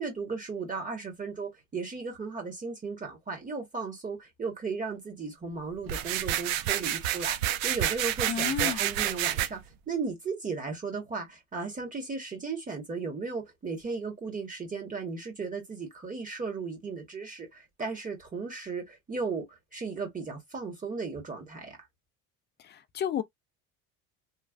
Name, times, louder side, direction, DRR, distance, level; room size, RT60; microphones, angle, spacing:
voice 1, 0.0-9.6 9.9-21.8, right 4 dB, 20° right, 1.4 m, -36 dB
sound 1, 5.9-9.5, right 12 dB, 65° right, 0.7 m, -29 dB
voice 2, 8.3-8.8 22.6-23.2, left 9 dB, 30° left, 0.4 m, -31 dB
3.2 x 2.3 x 2.5 m
supercardioid pair, 110°, 39 cm